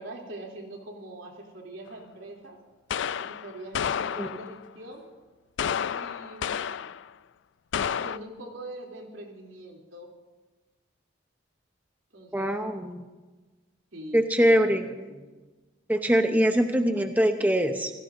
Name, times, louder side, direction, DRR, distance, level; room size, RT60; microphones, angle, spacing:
voice 1, 0.0-2.6 3.2-5.0 5.9-6.9 7.8-10.1 12.1-12.5 13.9-15.3, right 1 dB, 85° right, -1 dB, 3.1 m, -43 dB
sound 1, 1.9-2.0 2.9-4.7 5.6-7.1 7.7-8.2, left 8 dB, 65° left, 0.4 m, -30 dB
voice 2, 12.3-13.0 14.1-14.9 15.9-17.9, equal, 10° right, 5 dB, 0.8 m, -23 dB
28.0 x 17.5 x 2.7 m, 1.3 s
head